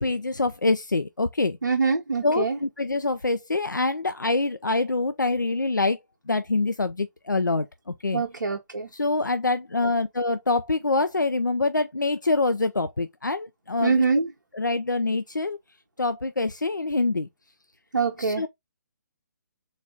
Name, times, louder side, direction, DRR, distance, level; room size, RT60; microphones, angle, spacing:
voice 1, 0.0-1.6 2.2-6.0 6.3-7.7 8.0-8.2 8.9-14.0 14.5-15.6 16.0-17.3 18.2-18.5, left 3 dB, 90° left, 0.4 m, -25 dB
voice 2, 1.6-2.6 8.1-8.9 13.8-14.3 17.9-18.4, right 4 dB, 75° right, 0.9 m, -24 dB
4.0 x 2.5 x 3.3 m
figure-of-eight pair, 140°, 10 cm